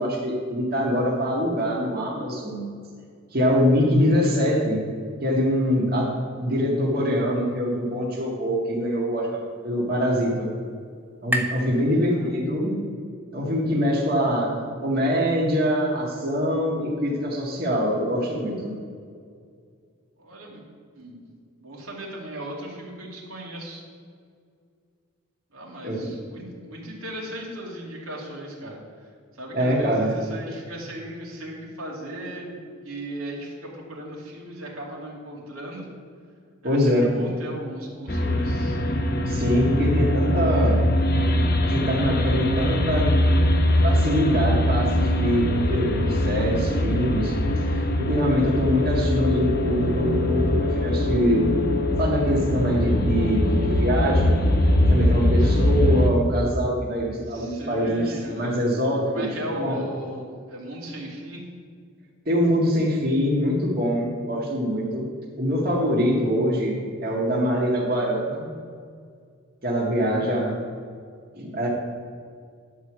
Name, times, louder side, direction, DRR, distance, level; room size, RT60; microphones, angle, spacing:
voice 1, 0.0-2.6 3.3-4.8 5.2-6.1 6.4-9.3 9.6-10.5 11.2-12.8 13.3-14.5 14.8-18.7 25.8-26.1 29.5-30.1 36.6-37.1 39.3-40.8 41.6-43.2 43.8-47.3 47.7-51.5 52.0-54.4 54.8-59.3 59.6-59.8 62.2-65.1 65.4-68.5 69.6-70.6 71.4-71.7, equal, 45° right, -5 dB, 1.9 m, -24 dB
sound 1, 8.9-12.7, right 1 dB, 10° right, 0.6 m, -35 dB
voice 2, 11.8-12.3 20.2-20.6 20.9-21.3 21.5-23.8 25.5-35.9 36.6-38.8 57.3-58.6 59.1-61.4 69.9-70.3, right 1 dB, 90° right, -3 dB, 2.6 m, -37 dB
sound 2, 38.1-56.1, left 1 dB, 45° left, 0.9 m, -22 dB
11.0 x 4.8 x 7.4 m, 2.2 s
head